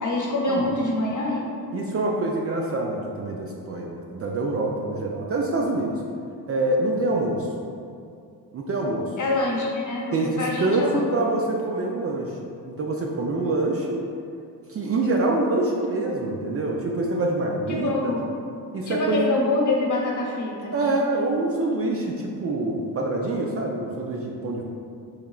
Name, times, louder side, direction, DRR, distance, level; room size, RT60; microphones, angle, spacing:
voice 1, 0.0-1.4 9.2-11.0 17.7-18.2 18.9-20.7, left 2 dB, 45° left, -3 dB, 1.0 m, -25 dB
voice 2, 1.7-6.0 6.5-7.5 8.5-9.1 10.1-12.4 12.7-14.1 14.7-18.1 18.7-19.2 20.7-24.6, right 2 dB, 35° right, -1 dB, 0.4 m, -25 dB
3.6 x 3.3 x 2.3 m, 2.4 s
supercardioid pair, 60°, 43 cm